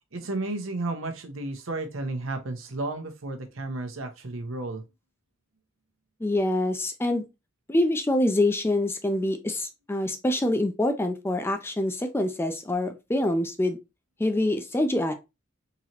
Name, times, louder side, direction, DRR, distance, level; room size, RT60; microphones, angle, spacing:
voice 1, 0.1-4.8, right 2 dB, 75° right, 0.9 m, -32 dB
voice 2, 6.2-7.2 7.7-13.8 14.2-15.1, left 1 dB, 10° left, 0.4 m, -25 dB
3.9 x 3.0 x 2.8 m
head